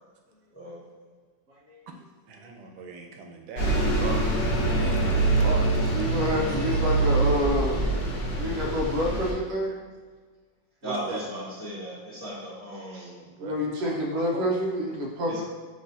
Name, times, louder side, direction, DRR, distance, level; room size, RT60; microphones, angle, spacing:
voice 1, 1.9-6.8 9.7-9.8 10.8-11.3 13.2-14.0 14.3-14.5, right 4 dB, 85° right, 4 dB, 1.3 m, -40 dB
Bus, 3.6-9.3, right 2 dB, 60° left, 1.2 m, -24 dB
voice 2, 5.9-7.8 8.4-9.8 13.4-15.4, equal, 65° right, -2 dB, 0.6 m, -27 dB
voice 3, 10.8-13.2 15.3-15.4, equal, 15° left, -8 dB, 0.5 m, -36 dB
5.3 x 3.1 x 2.7 m, 1.5 s
omnidirectional pair, 2.1 m